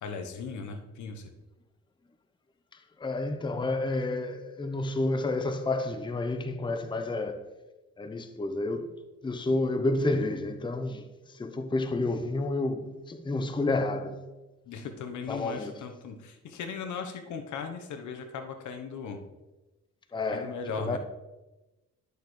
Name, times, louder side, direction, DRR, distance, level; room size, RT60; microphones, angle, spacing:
voice 1, 0.0-1.3 14.7-19.2 20.2-21.0, left 5 dB, 75° left, 1.1 m, -38 dB
voice 2, 3.0-7.5 8.0-8.9 9.2-11.1 11.3-14.3 15.3-15.7 20.1-20.5 20.8-21.0, left 2 dB, 15° left, 0.7 m, -30 dB
10.5 x 6.7 x 3.2 m
cardioid pair, 90°, 30 cm